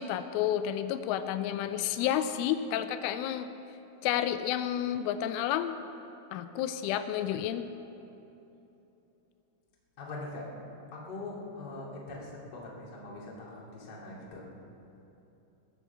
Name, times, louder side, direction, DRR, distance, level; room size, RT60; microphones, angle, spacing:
voice 1, 0.0-3.5 4.0-5.8 6.3-7.6, left 10 dB, 85° left, 10 dB, 3.0 m, -30 dB
voice 2, 10.0-10.5 10.9-14.4, left 2 dB, 35° left, -4 dB, 1.9 m, -42 dB
21.0 x 7.1 x 7.1 m, 3.0 s
omnidirectional pair, 5.6 m